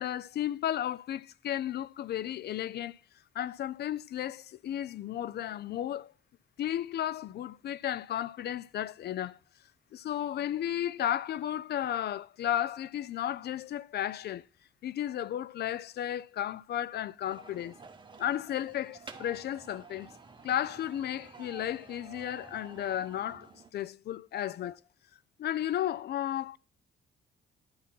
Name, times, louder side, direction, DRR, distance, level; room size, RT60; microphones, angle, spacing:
voice 1, 0.0-3.0 3.3-6.1 6.6-9.4 9.9-14.4 14.8-17.8 18.2-20.1 20.4-24.8 25.4-26.6, left 11 dB, 55° left, 0.4 m, -34 dB
sound 1, 17.2-23.7, right 4 dB, 25° right, 1.0 m, -51 dB
10.5 x 4.2 x 5.4 m
cardioid pair, 90°, 20 cm